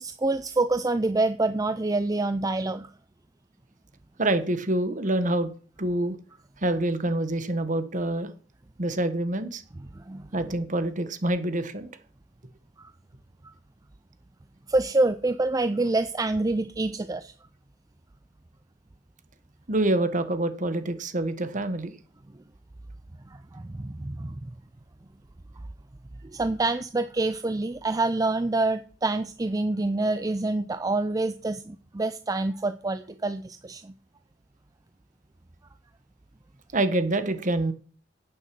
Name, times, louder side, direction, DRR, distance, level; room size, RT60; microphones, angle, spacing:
voice 1, 0.0-2.9 9.9-10.5 12.8-12.9 14.7-17.3 23.3-24.5 26.3-33.9, right 2 dB, 20° right, 11 dB, 0.4 m, -27 dB
voice 2, 4.2-5.5 5.8-6.2 6.6-8.3 8.8-9.6 10.3-11.9 19.7-21.9 36.7-37.7, right 1 dB, 40° right, 10 dB, 1.4 m, -26 dB
10.5 x 9.3 x 6.0 m, 0.42 s
head